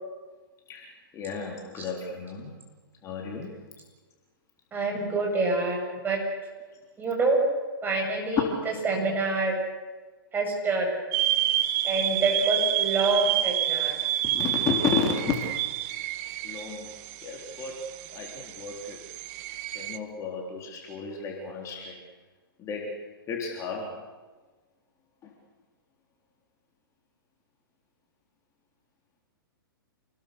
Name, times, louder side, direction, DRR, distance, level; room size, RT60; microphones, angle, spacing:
voice 1, 0.7-2.5 3.0-3.5 11.4-12.0 14.2-15.5 16.4-16.9 17.2-17.9 18.1-19.0 19.7-22.0 22.6-22.9 23.3-24.0 25.2-25.3, left 5 dB, 25° left, 0 dB, 3.7 m, -33 dB
voice 2, 4.7-6.2 7.0-7.4 7.8-8.5 8.8-9.5 10.3-10.9 11.8-14.0, right 3 dB, 15° right, 0 dB, 7.5 m, -26 dB
sound 1, 11.1-20.0, right 13 dB, 40° right, 1.4 m, -29 dB
28.5 x 20.5 x 6.8 m, 1.3 s
hypercardioid pair, 130°, 12 cm